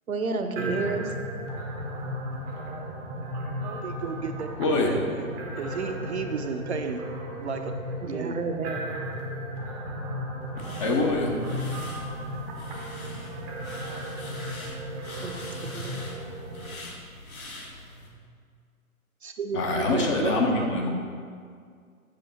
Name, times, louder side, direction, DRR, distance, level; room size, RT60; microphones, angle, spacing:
voice 1, 0.1-1.1 8.0-8.8 15.2-15.5 15.7-16.0, right 3 dB, 75° right, 7 dB, 0.9 m, -30 dB
sound 1, 0.6-16.7, equal, 15° right, 0.7 m, -35 dB
voice 2, 3.6-4.5 4.8-5.3 5.6-7.1 7.4-7.7 8.0-8.4 19.2-20.9, right 5 dB, 50° right, 5 dB, 0.5 m, -33 dB
voice 3, 4.6-4.9 10.8-11.3 19.5-20.9, left 2 dB, 20° left, 0 dB, 0.7 m, -24 dB
sound 2, 10.6-18.1, left 1 dB, 75° left, 1.8 m, -43 dB
7.7 x 6.5 x 4.2 m, 2.1 s
figure-of-eight pair, 125°, 43 cm